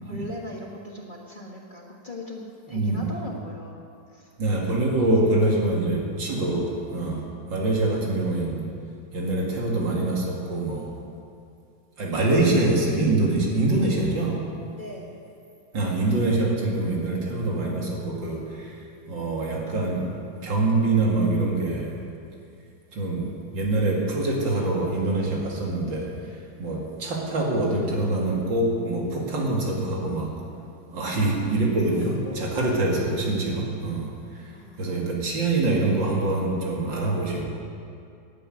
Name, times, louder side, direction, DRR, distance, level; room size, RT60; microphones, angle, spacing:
voice 1, 0.0-3.8 4.1-4.3 14.7-15.2 30.9-31.1 31.9-32.5 34.5-34.9, left 1 dB, 30° left, -1 dB, 1.4 m, -39 dB
voice 2, 2.7-3.0 4.4-7.2 7.5-8.6 9.1-10.9 12.0-14.4 15.7-20.1 20.4-21.9 22.9-30.3 30.9-37.5, right 2 dB, 75° right, -2 dB, 2.9 m, -25 dB
13.0 x 8.6 x 9.0 m, 2.5 s
omnidirectional pair, 2.0 m